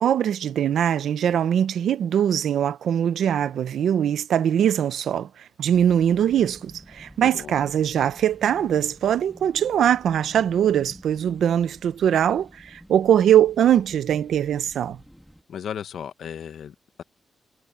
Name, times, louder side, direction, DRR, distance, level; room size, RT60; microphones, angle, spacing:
voice 1, 0.0-15.0, right 9 dB, 80° right, 0.8 m, -22 dB
sound 1, 5.7-15.4, equal, ahead, 1.5 m, -49 dB
voice 2, 7.2-7.5 15.5-17.0, left 8 dB, 70° left, 1.0 m, -35 dB
wide cardioid pair, 170°, 0 cm